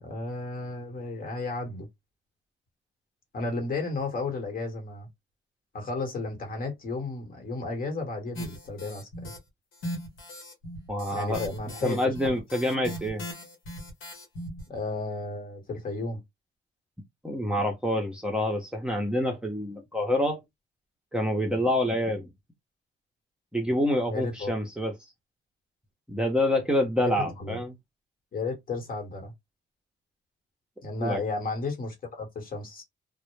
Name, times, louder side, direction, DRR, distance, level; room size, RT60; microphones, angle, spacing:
voice 1, 0.0-1.9 3.3-5.1 5.7-9.3 11.1-12.0 14.7-16.2 24.1-24.5 27.0-27.6 28.3-29.3 30.8-32.8, left 3 dB, 45° left, 1.1 m, -33 dB
sound 1, 8.4-9.4 9.7-14.6, equal, 75° left, 1.0 m, -39 dB
voice 2, 10.9-11.4 11.8-13.2 17.2-20.4 21.1-22.3 23.5-24.9 26.1-27.7 31.0-31.2, left 1 dB, 5° right, 0.6 m, -27 dB
2.1 x 2.0 x 3.1 m
cardioid pair, 90°, 20 cm